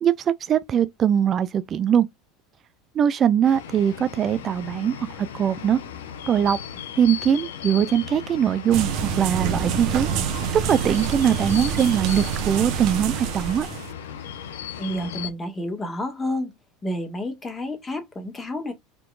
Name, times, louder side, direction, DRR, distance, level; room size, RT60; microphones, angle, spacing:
voice 1, 0.0-2.1 2.9-5.8 6.3-6.6 7.0-10.1 10.5-13.7, right 9 dB, 40° right, 0.4 m, -21 dB
sound 1, 3.4-15.3, left 8 dB, 75° left, 0.9 m, -37 dB
sound 2, 8.7-13.9, right 7 dB, 55° right, 1.0 m, -27 dB
voice 2, 14.8-16.5 16.8-18.7, left 1 dB, 20° left, 1.9 m, -30 dB
4.6 x 3.8 x 2.5 m
hypercardioid pair, 80°, 0 cm